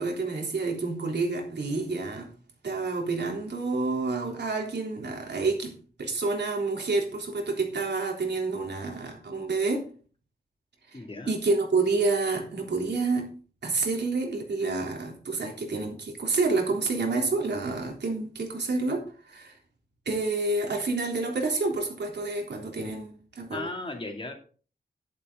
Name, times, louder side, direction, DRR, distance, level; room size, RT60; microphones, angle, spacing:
voice 1, 0.0-2.3 2.6-5.7 6.0-9.8 10.9-11.0 11.3-13.3 13.6-19.5 20.1-23.7, right 3 dB, 80° right, 1 dB, 3.6 m, -28 dB
voice 2, 10.9-11.3 23.5-24.3, left 2 dB, 30° left, 2 dB, 2.8 m, -36 dB
11.5 x 11.0 x 3.9 m, 0.40 s
wide cardioid pair, 135°, 17 cm